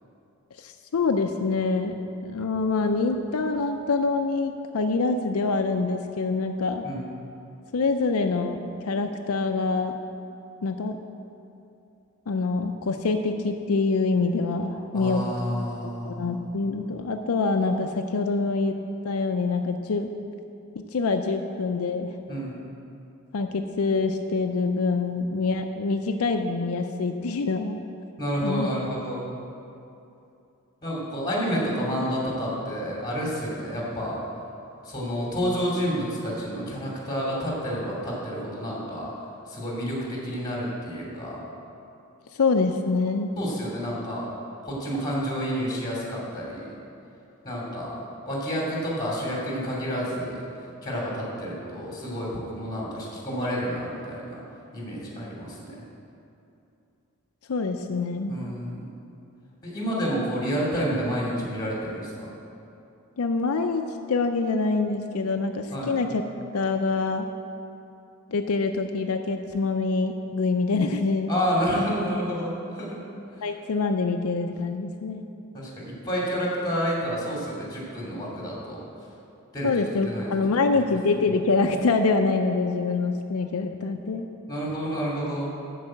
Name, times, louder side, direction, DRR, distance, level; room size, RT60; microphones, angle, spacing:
voice 1, 0.6-2.0 2.2-6.8 7.7-9.9 10.6-11.0 12.3-15.2 16.0-18.8 19.0-20.1 20.8-22.2 23.3-27.8 28.4-28.7 42.4-43.3 57.5-58.3 63.2-66.2 66.5-67.3 68.3-71.3 73.4-75.3 79.6-84.3, left 3 dB, 80° left, 5 dB, 0.5 m, -25 dB
voice 2, 14.9-16.8 22.3-22.6 28.2-29.2 30.8-34.2 34.8-39.1 39.5-41.4 43.4-44.3 44.6-46.7 47.4-48.0 48.2-50.4 50.8-54.4 54.7-55.8 58.3-58.9 59.6-62.3 65.7-66.0 71.3-73.0 73.3-73.5 75.5-78.8 79.5-80.3 80.7-80.9 84.5-85.5, equal, 20° left, -4 dB, 2.8 m, -29 dB
12.5 x 4.8 x 7.7 m, 2.7 s
head